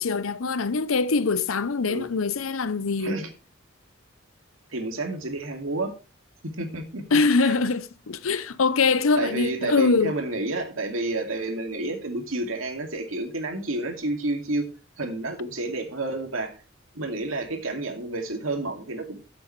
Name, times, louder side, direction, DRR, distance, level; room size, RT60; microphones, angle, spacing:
voice 1, 0.0-3.2 7.1-10.2, left 4 dB, 85° left, 0.7 m, -23 dB
voice 2, 4.7-5.9 6.6-7.0 7.4-7.5 9.2-14.7 15.0-16.6 16.9-19.2, right 2 dB, 80° right, 2.4 m, -30 dB
13.5 x 7.7 x 3.2 m
head